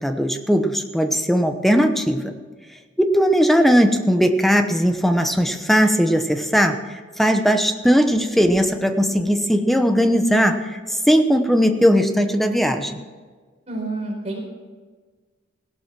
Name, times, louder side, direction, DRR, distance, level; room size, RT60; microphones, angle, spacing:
voice 1, 0.0-2.2 3.0-6.8 7.2-10.8 11.1-13.0, equal, ahead, 6 dB, 1.0 m, -18 dB
voice 2, 13.7-14.4, right 2 dB, 35° right, -1 dB, 4.5 m, -28 dB
17.0 x 12.0 x 6.0 m, 1.5 s
head